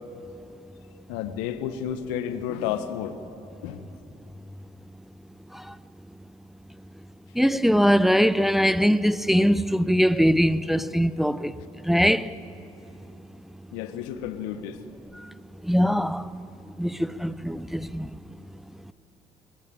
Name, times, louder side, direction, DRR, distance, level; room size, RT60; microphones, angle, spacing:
voice 1, 1.1-3.2 3.6-3.9 13.7-14.8, left 9 dB, 75° left, 1.3 m, -31 dB
voice 2, 7.3-12.4 15.1-15.3 15.6-16.3 16.8-18.1, equal, ahead, 0.7 m, -22 dB
22.0 x 20.0 x 9.0 m
hypercardioid pair, 55°, 18 cm